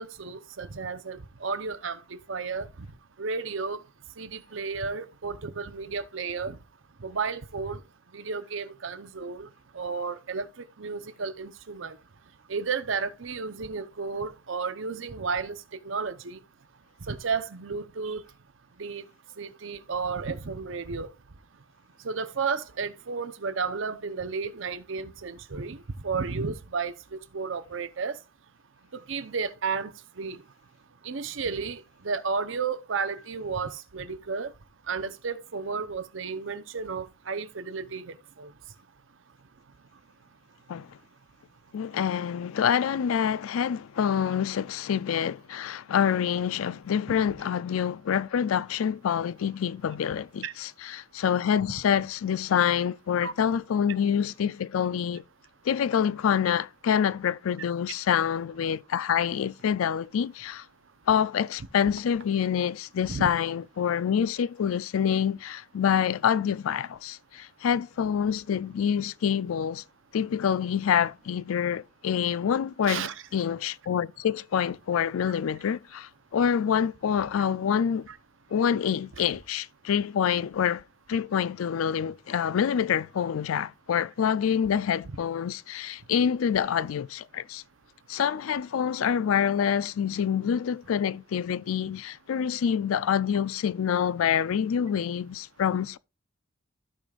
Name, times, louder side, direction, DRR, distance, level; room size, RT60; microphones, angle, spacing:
voice 1, 0.0-2.9 3.2-3.8 4.2-6.6 7.0-7.8 8.1-9.5 9.7-12.0 12.5-15.6 15.8-16.4 17.0-18.2 18.8-19.0 19.4-21.1 22.0-28.2 28.9-30.4 31.0-34.5 34.9-38.5 50.4-50.5 53.2-53.3 63.1-63.2 72.8-73.1 78.1-78.2, right 5 dB, 70° right, 0.7 m, -33 dB
voice 2, 41.7-55.2 55.7-60.6 61.1-69.8 70.1-73.1 73.3-78.1 78.5-80.8 81.1-87.6 88.1-96.0, left 8 dB, 85° left, 0.4 m, -26 dB
15.0 x 5.1 x 2.4 m
head